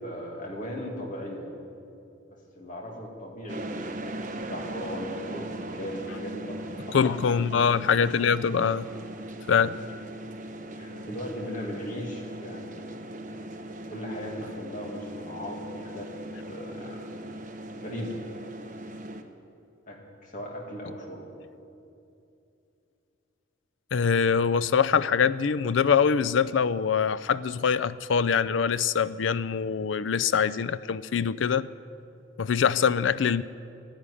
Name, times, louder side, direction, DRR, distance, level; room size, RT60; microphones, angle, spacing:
voice 1, 0.0-1.5 2.3-7.5 10.8-13.3 13.9-16.1 16.5-17.4 17.7-18.2 19.9-21.3, equal, 45° left, -1 dB, 2.4 m, -38 dB
sound 1, 3.5-19.2, right 1 dB, 40° right, 0.9 m, -39 dB
voice 2, 6.9-8.9 9.5-9.8 23.9-31.7 32.4-33.4, left 6 dB, 75° left, 15 dB, 0.4 m, -24 dB
12.5 x 10.5 x 9.9 m, 2.6 s
head